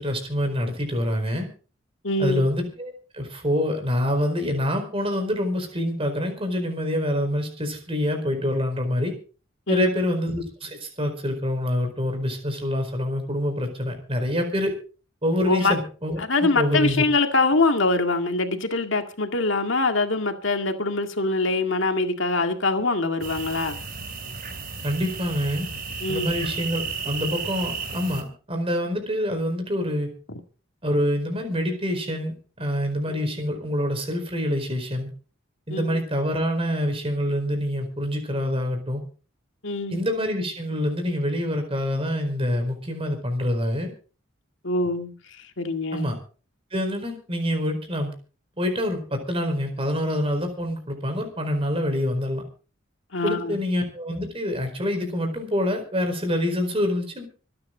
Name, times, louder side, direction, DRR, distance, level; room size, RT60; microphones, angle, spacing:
voice 1, 0.0-1.5 2.2-9.1 9.7-14.7 15.2-17.0 24.8-25.7 26.1-30.1 30.8-35.1 35.7-39.0 39.9-43.9 45.9-46.2 46.7-48.1 48.6-52.4 53.2-57.2, equal, 30° right, 4.5 m, -26 dB
voice 2, 2.0-2.4 9.7-9.9 15.5-15.7 16.2-23.8 26.0-26.3 33.1-33.3 35.7-36.0 39.6-40.0 44.6-46.1 53.1-53.6, left 3 dB, 65° left, 2.0 m, -24 dB
sound 1, 23.2-28.2, right 5 dB, 45° right, 3.0 m, -33 dB
25.5 x 9.8 x 3.9 m
head